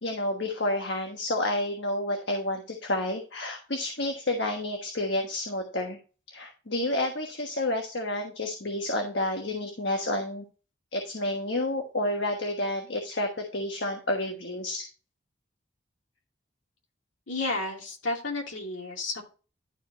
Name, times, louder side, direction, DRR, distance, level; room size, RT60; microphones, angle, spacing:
voice 1, 0.0-6.0 6.3-10.4 10.9-14.9, left 1 dB, 70° left, 3 dB, 1.3 m, -30 dB
voice 2, 17.3-19.2, left 2 dB, 85° left, 0 dB, 2.5 m, -32 dB
12.0 x 5.0 x 3.0 m, 0.35 s
head